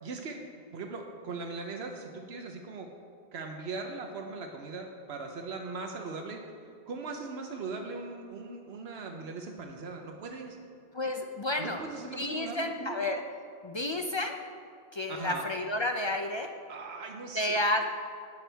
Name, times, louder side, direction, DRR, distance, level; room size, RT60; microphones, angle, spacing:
voice 1, 0.0-0.4 0.7-2.9 3.3-6.4 6.9-10.6 11.6-13.0 15.1-15.5 16.7-17.8, right 3 dB, 80° right, 3 dB, 1.0 m, -39 dB
voice 2, 10.9-11.8 12.2-13.2 13.6-14.4 14.9-16.5 17.3-17.8, left 1 dB, 40° left, 4 dB, 0.4 m, -31 dB
18.0 x 6.1 x 3.4 m, 2.3 s
omnidirectional pair, 1.1 m